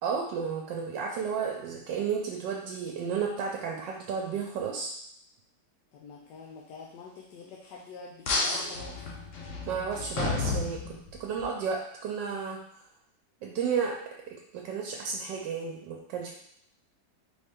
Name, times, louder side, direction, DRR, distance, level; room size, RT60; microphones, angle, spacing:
voice 1, 0.0-4.9 9.7-12.6 13.4-14.0 14.3-16.3, right 6 dB, 85° right, -1 dB, 1.3 m, -32 dB
voice 2, 5.9-9.0, left 4 dB, 75° left, -2 dB, 1.2 m, -46 dB
sound 1, 8.3-11.5, left 3 dB, 60° left, 0.9 m, -32 dB
4.3 x 3.2 x 3.4 m, 0.72 s
omnidirectional pair, 1.9 m